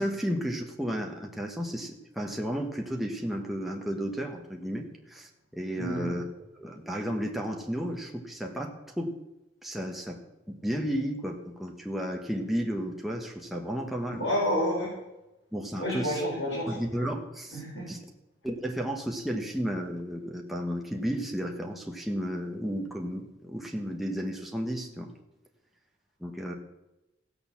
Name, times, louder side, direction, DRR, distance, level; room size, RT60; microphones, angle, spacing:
voice 1, 0.0-6.2 6.6-9.1 9.6-10.2 10.5-14.2 15.5-16.2 16.7-18.0 18.4-25.1 26.2-26.5, equal, ahead, 0 dB, 1.4 m, -33 dB
voice 2, 5.8-6.1 14.2-14.9 15.8-16.7 17.5-17.9, equal, 75° left, -4 dB, 5.6 m, -29 dB
16.0 x 6.9 x 7.2 m, 0.97 s
head